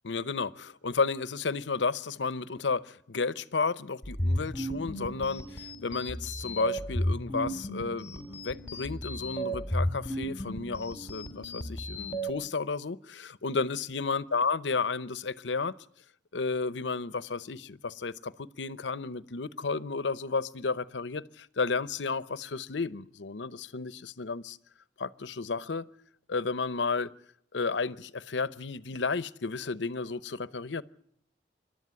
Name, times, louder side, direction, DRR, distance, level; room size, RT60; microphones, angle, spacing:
voice 1, 0.0-15.7 16.3-24.6 25.0-25.9 26.3-27.1 27.5-30.8, left 4 dB, 90° left, 0.8 m, -32 dB
sound 1, 4.0-12.3, equal, 15° left, 3.1 m, -34 dB
26.5 x 12.0 x 9.5 m
head